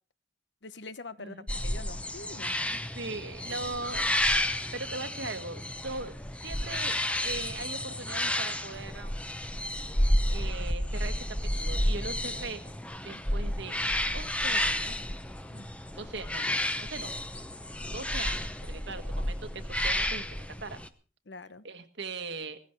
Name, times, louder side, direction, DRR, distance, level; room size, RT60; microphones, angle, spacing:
voice 1, 0.6-1.4 1.6-2.6 15.5-15.7 21.3-21.6, left 3 dB, 75° left, 14 dB, 1.0 m, -44 dB
sound 1, 1.5-20.9, left 1 dB, 5° left, 0.8 m, -31 dB
voice 2, 2.7-4.4 4.7-6.1 6.4-9.3 10.3-12.6 13.0-13.8 14.1-15.0 16.0-16.5 16.8-17.1 17.9-20.8 21.6-22.6, right 3 dB, 80° right, 8 dB, 1.7 m, -40 dB
18.5 x 15.0 x 4.6 m, 0.38 s
head